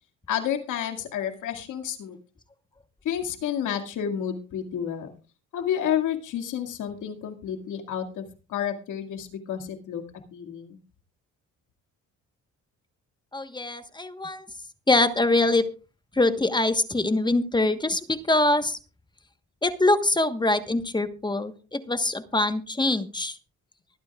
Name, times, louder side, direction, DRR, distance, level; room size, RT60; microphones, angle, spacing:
voice 1, 0.3-2.2 3.0-5.1 5.5-8.2 8.5-10.0 10.3-10.8, left 9 dB, 85° left, 6 dB, 2.2 m, -30 dB
voice 2, 13.3-14.4 14.9-15.7 16.1-18.8 19.6-23.4, left 2 dB, 15° left, 10 dB, 1.3 m, -24 dB
24.5 x 9.3 x 2.4 m, 0.34 s
cardioid pair, 90°, 30 cm